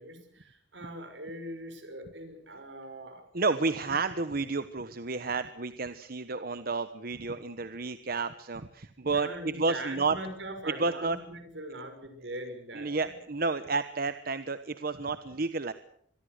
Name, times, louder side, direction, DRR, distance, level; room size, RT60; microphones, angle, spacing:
voice 1, 0.0-3.3 9.0-13.1, right 1 dB, 80° right, 8 dB, 6.2 m, -41 dB
voice 2, 3.3-10.2 10.8-11.2 12.7-15.7, right 3 dB, 55° right, 11 dB, 1.2 m, -31 dB
25.5 x 22.0 x 6.6 m, 0.67 s
head